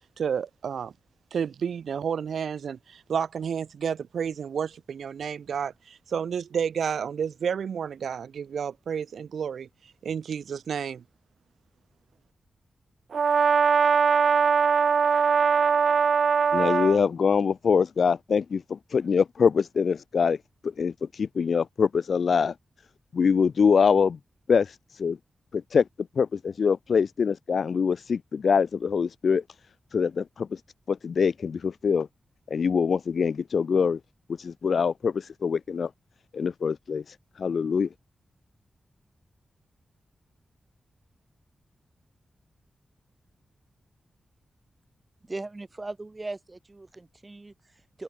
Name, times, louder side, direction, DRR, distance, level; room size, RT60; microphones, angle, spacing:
voice 1, 0.2-0.9 1.3-9.7 10.0-11.0, right 7 dB, 90° right, 1.6 m, -31 dB
Brass instrument, 13.1-17.0, right 6 dB, 55° right, 0.4 m, -21 dB
voice 2, 16.5-20.4 20.6-22.5 23.1-24.2 24.5-25.2 25.5-25.8 26.2-29.4 29.9-30.6 30.9-32.1 32.5-34.0 34.4-35.9 36.3-37.0 37.4-37.9, left 6 dB, 60° left, 0.9 m, -24 dB
voice 3, 45.3-48.0, right 2 dB, 20° right, 2.6 m, -39 dB
wide cardioid pair, 170°, 0 cm